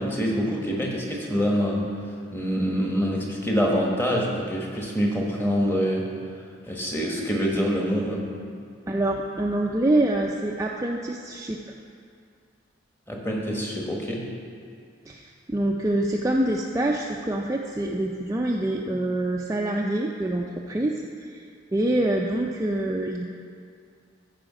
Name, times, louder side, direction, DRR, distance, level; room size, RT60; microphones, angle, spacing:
voice 1, 0.0-1.8 2.3-6.0 6.7-8.2 13.1-14.3, equal, 10° left, -1 dB, 1.2 m, -25 dB
voice 2, 8.9-11.6 15.1-21.4 21.7-23.3, right 1 dB, 15° right, 0 dB, 0.4 m, -26 dB
14.0 x 4.9 x 4.9 m, 2.3 s
head